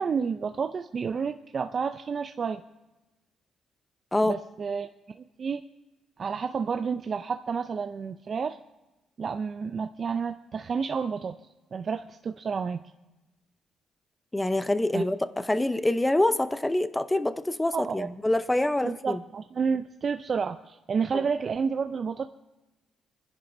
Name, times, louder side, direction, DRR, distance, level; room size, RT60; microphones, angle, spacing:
voice 1, 0.0-2.6 4.2-4.9 5.2-5.6 6.2-8.6 9.2-11.4 11.7-12.8 14.9-15.0 17.7-18.1 18.8-22.3, right 5 dB, 45° right, 8 dB, 0.4 m, -30 dB
voice 2, 14.3-19.2 21.1-21.2, left 1 dB, 10° left, 12 dB, 0.7 m, -26 dB
26.5 x 10.5 x 2.7 m, 1.1 s
cardioid pair, 90°, 0 cm